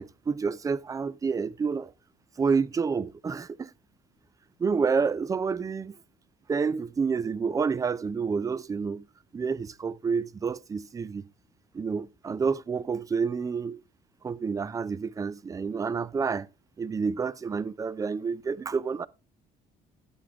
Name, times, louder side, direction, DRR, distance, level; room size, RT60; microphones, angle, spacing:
voice 1, 0.0-1.9 2.4-3.7 4.6-6.0 6.5-9.0 9.3-11.2 11.7-13.8 14.2-16.5 16.8-19.1, right 5 dB, 20° right, 0.4 m, -29 dB
11.5 x 7.6 x 3.5 m
cardioid pair, 110°, 17 cm